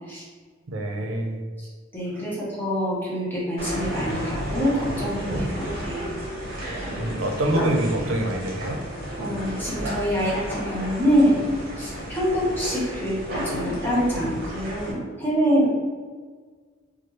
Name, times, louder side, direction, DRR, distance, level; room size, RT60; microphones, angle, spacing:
voice 1, 0.7-1.4 7.0-8.8, right 1 dB, 85° right, 2 dB, 0.5 m, -25 dB
voice 2, 1.9-6.0 9.2-11.5 11.8-15.7, equal, 10° left, -7 dB, 0.8 m, -25 dB
sound 1, 3.6-14.9, equal, 50° right, 0.9 m, -32 dB
3.0 x 2.3 x 3.1 m, 1.5 s
head